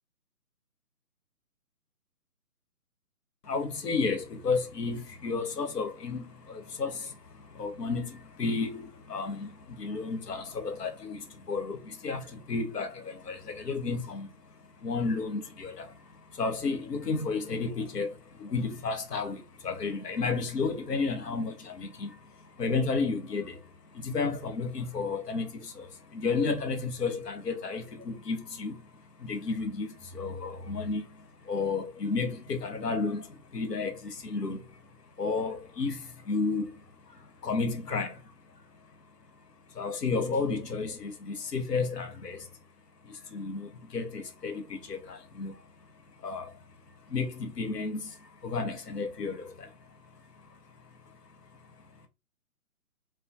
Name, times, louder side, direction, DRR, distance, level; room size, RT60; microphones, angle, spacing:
voice 1, 3.5-7.1 7.6-9.5 9.8-12.2 12.5-14.3 14.8-15.9 16.4-18.1 18.4-22.1 22.6-23.5 24.0-25.5 25.8-25.9 26.1-28.7 29.2-29.9 30.1-31.0 31.5-33.2 33.5-34.0 34.2-34.6 35.2-36.0 36.3-36.7 37.4-38.1 39.8-42.4 43.3-44.6 44.9-45.5 46.2-46.5 47.1-48.0 48.4-49.7, left 4 dB, 90° left, 0.8 m, -32 dB
2.2 x 2.2 x 2.5 m
figure-of-eight pair, 155°, 47 cm